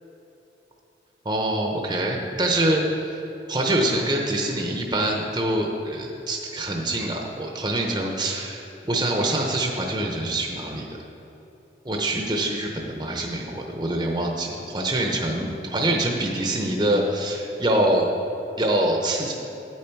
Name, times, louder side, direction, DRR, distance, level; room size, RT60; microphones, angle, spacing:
voice 1, 1.2-3.2 3.5-8.6 8.9-11.0 11.8-18.1 18.6-19.3, right 1 dB, 20° right, 1 dB, 0.7 m, -25 dB
9.2 x 8.8 x 4.5 m, 3.0 s
head